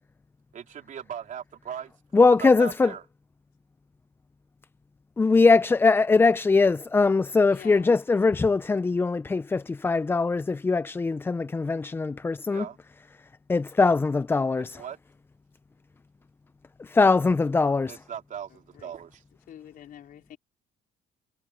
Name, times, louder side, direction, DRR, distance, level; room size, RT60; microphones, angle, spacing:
voice 1, 0.5-1.9 2.3-3.1 12.5-12.8 14.6-15.0 17.9-19.2, right 9 dB, 50° right, 3.4 m, -39 dB
voice 2, 2.1-2.9 5.2-12.6 13.5-14.8 16.9-17.9, left 4 dB, 15° left, 0.3 m, -21 dB
voice 3, 7.5-8.0 17.3-17.4 18.5-18.9 19.5-20.4, left 10 dB, 60° left, 4.0 m, -47 dB
cardioid pair, 110°, 17 cm